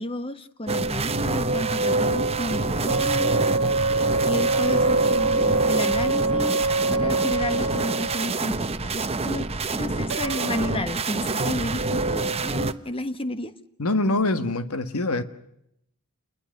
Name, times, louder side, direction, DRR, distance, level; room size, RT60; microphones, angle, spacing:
voice 1, 0.0-3.5 4.3-13.5, left 1 dB, 25° left, 1.4 m, -32 dB
sound 1, 0.7-12.7, right 3 dB, 30° right, 1.0 m, -26 dB
sound 2, 2.9-8.4 10.1-10.8, right 3 dB, 60° right, 2.1 m, -25 dB
voice 2, 13.8-15.2, left 2 dB, 70° left, 1.5 m, -24 dB
28.5 x 21.0 x 6.6 m
head